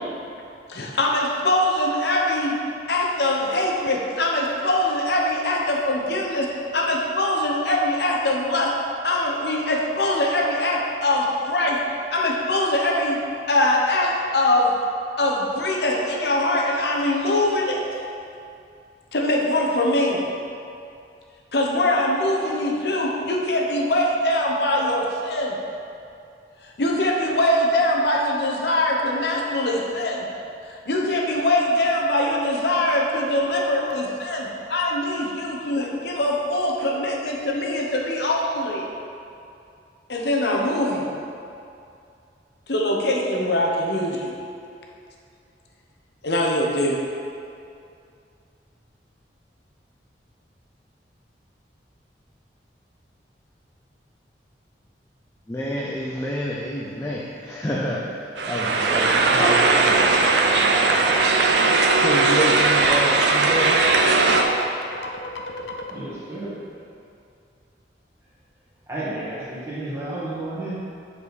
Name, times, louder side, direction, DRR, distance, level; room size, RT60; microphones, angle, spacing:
voice 1, 0.7-2.6 2.9-8.7 9.0-11.8 12.1-13.2 13.5-14.7 15.2-17.8 19.1-20.2 21.5-25.5 26.6-30.3 30.7-38.9 40.1-41.1 42.7-44.3 46.2-47.0, left 1 dB, 70° left, -1 dB, 0.9 m, -22 dB
voice 2, 55.5-61.6 62.0-63.8, equal, 15° left, -4 dB, 0.5 m, -29 dB
sound 1, 58.4-64.4, right 3 dB, 80° right, 0.6 m, -18 dB
sound 2, 59.0-65.9, left 1 dB, 90° left, 0.6 m, -34 dB
voice 3, 65.9-66.6 68.9-70.8, right 2 dB, 15° right, -9 dB, 1.6 m, -31 dB
7.6 x 4.9 x 4.1 m, 2.5 s
head